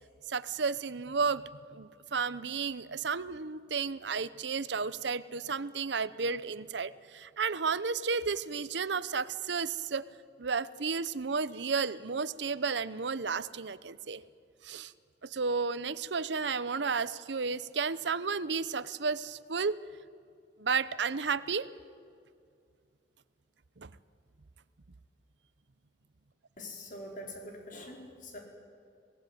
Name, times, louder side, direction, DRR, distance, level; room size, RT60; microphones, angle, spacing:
voice 1, 0.3-1.4 1.7-10.1 10.4-14.2 14.6-14.9 15.2-19.8 20.6-21.7 23.8-23.9, right 5 dB, 70° right, 17 dB, 0.8 m, -32 dB
voice 2, 26.6-28.4, left 1 dB, 45° left, 1 dB, 4.9 m, -44 dB
26.5 x 18.5 x 9.3 m, 2.2 s
head